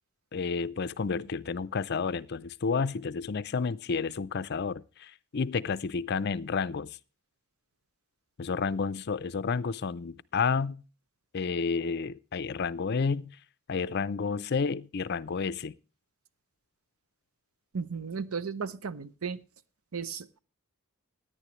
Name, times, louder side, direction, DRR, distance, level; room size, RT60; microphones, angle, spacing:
voice 1, 0.3-7.0 8.4-10.8 11.3-13.4 13.7-15.7, left 5 dB, 50° left, 0.5 m, -31 dB
voice 2, 17.7-19.4 19.9-20.4, right 5 dB, 75° right, 0.7 m, -35 dB
16.5 x 9.8 x 3.1 m
head